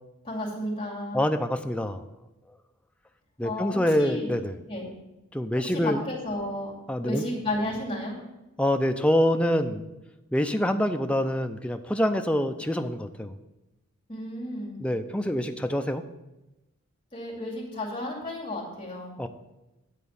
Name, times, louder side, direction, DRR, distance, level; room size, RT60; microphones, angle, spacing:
voice 1, 0.2-1.2 3.4-4.3 4.7-4.9 5.6-6.7 7.0-8.2 14.1-14.8 17.1-19.2, left 1 dB, 20° left, -4 dB, 2.5 m, -33 dB
voice 2, 1.1-2.0 3.4-4.6 5.3-6.0 6.9-7.2 8.6-9.8 10.3-13.3 14.8-16.0 19.2-19.3, equal, 5° left, 6 dB, 0.4 m, -25 dB
10.0 x 4.2 x 6.9 m, 0.99 s
head